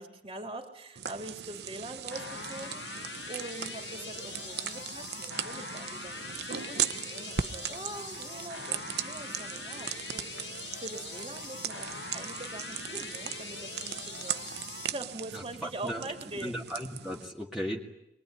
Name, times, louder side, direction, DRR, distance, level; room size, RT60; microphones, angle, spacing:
voice 1, 0.0-16.6, right 2 dB, 35° right, 3 dB, 3.4 m, -43 dB
sound 1, 1.0-17.3, right 8 dB, 65° right, 0.9 m, -38 dB
sound 2, 2.1-14.9, left 6 dB, 85° left, 1.6 m, -43 dB
voice 2, 16.4-17.8, equal, ahead, -3 dB, 2.2 m, -36 dB
23.0 x 23.0 x 9.9 m, 0.86 s
head